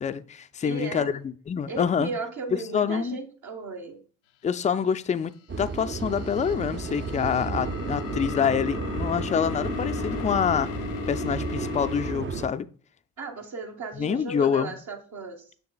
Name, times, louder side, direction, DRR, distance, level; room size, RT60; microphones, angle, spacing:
voice 1, 0.0-2.1 2.5-3.2 4.4-10.7 11.1-12.7 13.9-14.7, left 7 dB, 20° left, 11 dB, 0.4 m, -26 dB
voice 2, 0.6-1.1 1.7-4.0 13.2-15.5, right 4 dB, 50° right, 1 dB, 1.3 m, -36 dB
sound 1, 5.5-12.5, right 4 dB, 30° right, 0.7 m, -32 dB
sound 2, 5.7-12.1, left 11 dB, 80° left, 0.6 m, -37 dB
6.7 x 6.6 x 2.3 m, 0.42 s
hypercardioid pair, 45°, 38 cm